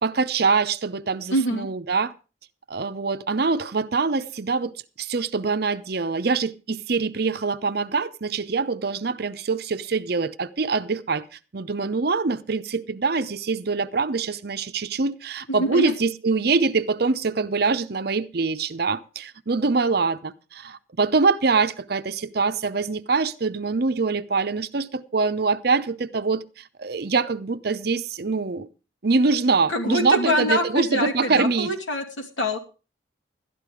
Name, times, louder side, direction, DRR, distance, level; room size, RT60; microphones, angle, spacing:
voice 1, 0.0-2.1 2.7-4.7 5.0-11.2 11.5-28.7 29.0-31.7, right 4 dB, 50° right, 0.7 m, -24 dB
voice 2, 1.3-1.7 15.5-15.9 29.7-32.6, equal, 85° left, 2.6 m, -25 dB
12.5 x 11.0 x 4.9 m
head